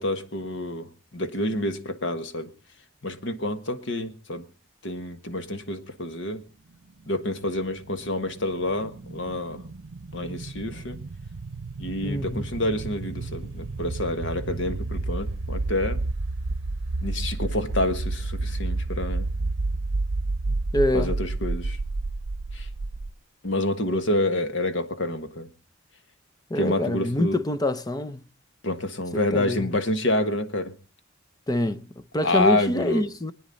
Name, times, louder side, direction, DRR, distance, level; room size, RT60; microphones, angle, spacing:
voice 1, 0.0-2.5 3.0-4.5 4.8-6.4 7.1-9.6 10.1-11.0 11.8-16.0 17.0-19.3 20.9-21.8 22.5-22.7 23.4-25.5 26.5-27.4 28.6-30.7 32.2-33.1, left 1 dB, 70° left, 1.4 m, -28 dB
sound 1, 7.2-23.1, right 2 dB, 90° right, 0.7 m, -31 dB
voice 2, 12.0-12.5 20.7-21.1 26.5-28.2 29.3-29.7 31.5-33.3, left 1 dB, 20° left, 0.7 m, -26 dB
25.0 x 9.4 x 4.0 m
head